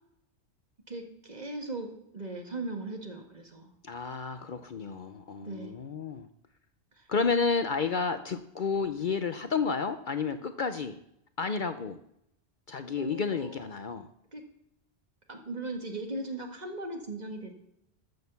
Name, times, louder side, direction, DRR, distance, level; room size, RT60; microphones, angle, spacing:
voice 1, 0.9-3.7 5.4-5.7 7.0-7.1 13.0-13.7 14.3-14.4 15.3-17.5, right 2 dB, 40° right, 3 dB, 1.9 m, -38 dB
voice 2, 3.8-6.3 7.1-11.0 11.4-12.0 12.7-14.1, left 5 dB, 55° left, 10 dB, 0.8 m, -31 dB
13.0 x 6.5 x 6.9 m, 0.76 s
omnidirectional pair, 1.1 m